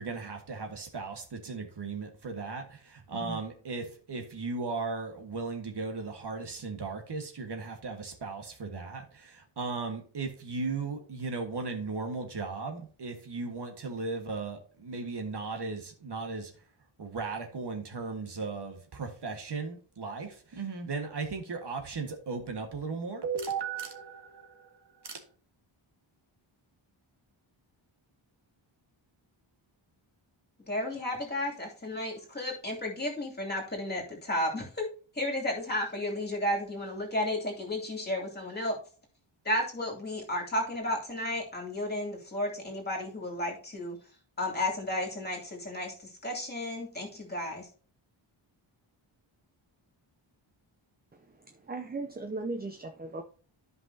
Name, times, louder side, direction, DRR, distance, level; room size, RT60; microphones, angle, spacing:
voice 1, 0.0-16.5 17.0-25.2, right 4 dB, 55° right, 1.7 m, -36 dB
voice 2, 30.7-34.9 35.1-38.8 39.4-44.0 44.4-47.7, left 1 dB, 20° left, 2.8 m, -33 dB
voice 3, 51.7-53.2, right 3 dB, 20° right, 0.6 m, -36 dB
13.0 x 5.5 x 2.8 m
wide cardioid pair, 145°, 49 cm